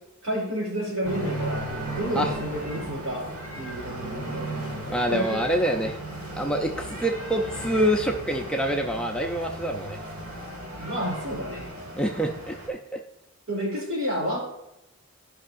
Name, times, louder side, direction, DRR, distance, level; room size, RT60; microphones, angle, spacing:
voice 1, 0.2-1.7 2.0-3.3 3.6-4.5 5.1-5.4 10.7-11.7 13.5-14.4, equal, 65° right, -3 dB, 3.2 m, -30 dB
sound 1, 1.0-12.7, right 1 dB, 80° right, 2.5 m, -35 dB
voice 2, 4.9-6.0 6.4-10.0 11.9-13.0, right 1 dB, 5° left, 2 dB, 0.5 m, -26 dB
14.0 x 5.5 x 2.6 m, 0.84 s
head